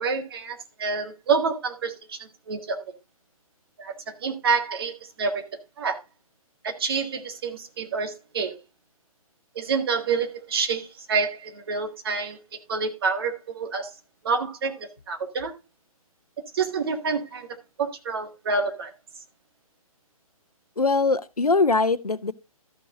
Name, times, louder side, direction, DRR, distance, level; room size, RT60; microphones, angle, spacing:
voice 1, 0.0-2.8 3.8-4.9 5.2-5.4 5.8-6.0 6.6-8.6 9.6-12.4 12.7-13.9 14.2-15.5 16.5-17.5 17.8-18.9, right 5 dB, 40° right, 1.7 m, -27 dB
voice 2, 20.8-22.3, left 3 dB, 80° left, 0.7 m, -22 dB
13.0 x 6.1 x 3.8 m
figure-of-eight pair, 135°, 19 cm